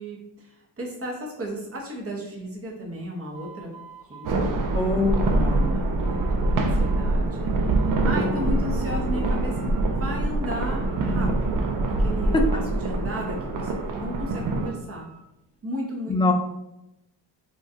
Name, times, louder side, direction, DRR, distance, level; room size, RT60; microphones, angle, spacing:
voice 1, 0.0-3.7 4.1-4.3 5.5-15.1 15.6-16.2, equal, 30° right, -2 dB, 1.0 m, -35 dB
sound 1, 3.3-5.8 6.0-7.1 7.5-8.5 8.7-9.8 10.2-11.1 11.4-12.7 13.1-15.2, right 4 dB, 15° right, 1.5 m, -47 dB
sound 2, 4.2-14.7, right 2 dB, 45° right, 0.5 m, -24 dB
voice 2, 4.7-5.8 7.5-7.7 8.1-8.5 12.3-12.4 16.1-16.3, left 3 dB, 15° left, 4 dB, 0.3 m, -25 dB
3.0 x 2.4 x 2.7 m, 0.90 s
cardioid pair, 70°, 44 cm